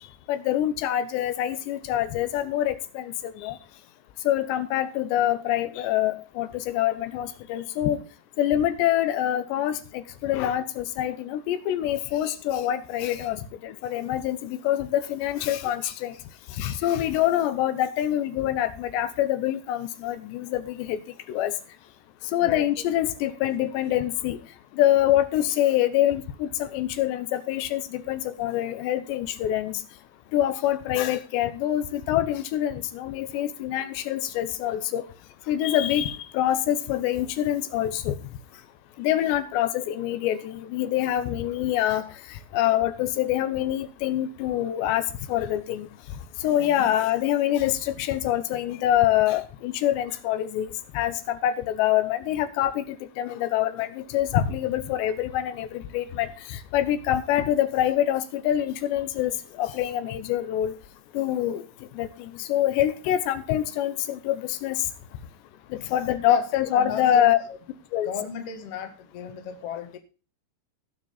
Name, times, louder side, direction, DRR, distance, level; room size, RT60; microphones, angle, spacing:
voice 1, 0.3-3.6 4.3-8.0 8.4-16.1 16.6-21.0 21.3-21.5 22.3-24.4 24.8-29.8 30.3-35.0 35.5-38.1 39.0-42.1 42.5-45.0 45.3-45.9 46.4-60.7 61.1-61.6 62.0-64.8 65.7-67.4 67.9-68.1, left 12 dB, 85° left, 12 dB, 3.2 m, -25 dB
voice 2, 46.6-46.9 66.2-67.6 68.0-70.0, left 8 dB, 55° left, 7 dB, 1.8 m, -35 dB
19.0 x 6.4 x 4.0 m, 0.34 s
omnidirectional pair, 4.9 m